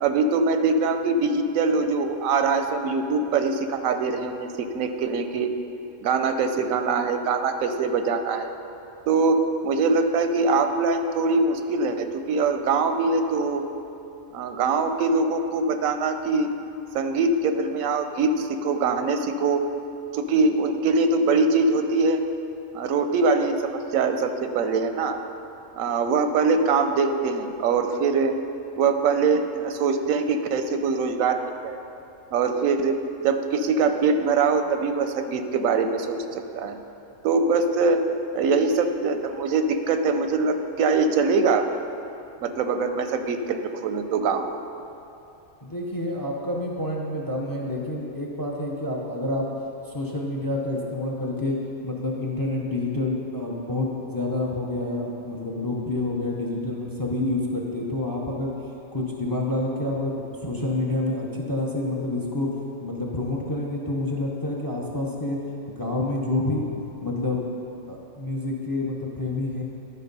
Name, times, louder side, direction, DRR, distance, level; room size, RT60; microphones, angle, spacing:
voice 1, 0.0-5.5 6.0-8.5 9.1-13.7 14.3-16.5 16.9-19.7 20.1-22.2 22.7-25.2 25.8-28.4 28.8-31.8 32.3-36.2 36.6-36.8 37.2-38.0 38.3-41.7 42.4-44.5, right 4 dB, 85° right, 7 dB, 1.0 m, -23 dB
voice 2, 45.6-49.5 49.9-51.6 51.8-58.5 58.9-62.5 62.8-65.4 65.7-66.6 67.0-67.4 67.9-69.6, left 2 dB, 20° left, 0 dB, 0.6 m, -28 dB
11.5 x 4.5 x 5.3 m, 2.8 s
omnidirectional pair, 1.4 m